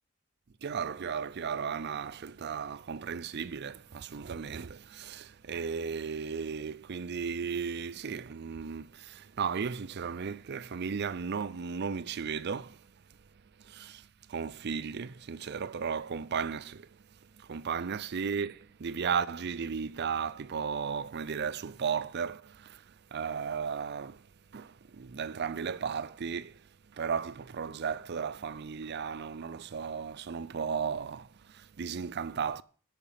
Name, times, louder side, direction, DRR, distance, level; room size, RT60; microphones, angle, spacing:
voice 1, 0.6-12.9 13.6-24.3 24.5-32.6, right 6 dB, 50° right, 0.5 m, -35 dB
13.0 x 5.8 x 7.4 m
head